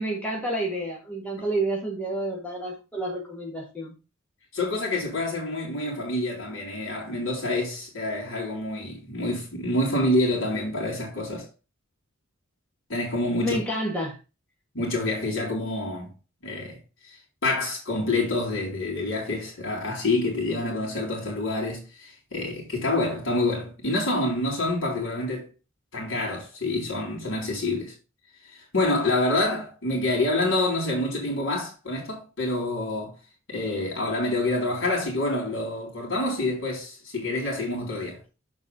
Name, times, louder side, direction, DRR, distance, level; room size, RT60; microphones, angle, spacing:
voice 1, 0.0-3.9 13.4-14.2, right 1 dB, 5° left, 1.9 m, -29 dB
voice 2, 4.5-11.5 12.9-13.6 14.7-16.1 16.4-16.8 17.4-25.5 25.9-27.9 28.7-33.2 33.5-38.2, left 2 dB, 65° left, 3.8 m, -27 dB
7.0 x 4.8 x 5.4 m
head